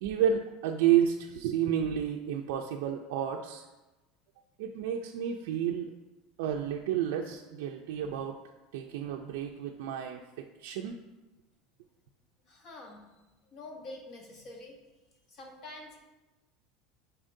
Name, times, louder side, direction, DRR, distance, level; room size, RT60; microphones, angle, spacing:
voice 1, 0.0-3.7 4.6-5.9 6.4-8.4 8.7-11.0, right 9 dB, 80° right, 1 dB, 0.4 m, -30 dB
voice 2, 12.5-13.0 13.5-14.8 15.3-16.0, left 2 dB, 40° left, 1 dB, 1.1 m, -46 dB
8.7 x 4.3 x 2.6 m, 1.1 s
supercardioid pair, 155°, 0 cm